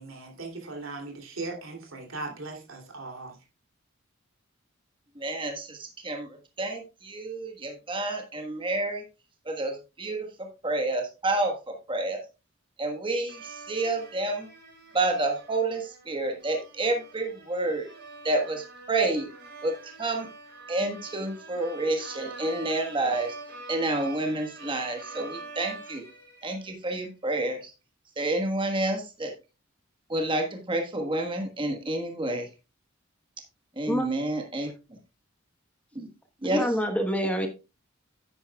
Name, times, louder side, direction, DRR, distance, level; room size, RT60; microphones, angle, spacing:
voice 1, 0.0-3.4, right 3 dB, 85° right, 2.8 m, -38 dB
voice 2, 5.2-6.3 6.6-9.0 9.4-10.3 10.6-12.2 12.8-14.5 14.9-17.9 18.2-19.3 19.6-20.3 20.7-23.3 23.7-26.0 26.4-27.7 28.2-29.3 30.1-32.5 33.8-34.7 35.9-36.1 36.4-36.6, right 2 dB, 25° right, 1.3 m, -29 dB
sound 1, 13.3-27.0, right 3 dB, 55° right, 4.4 m, -45 dB
voice 3, 36.5-37.5, equal, 5° left, 1.1 m, -26 dB
9.9 x 9.4 x 2.3 m
head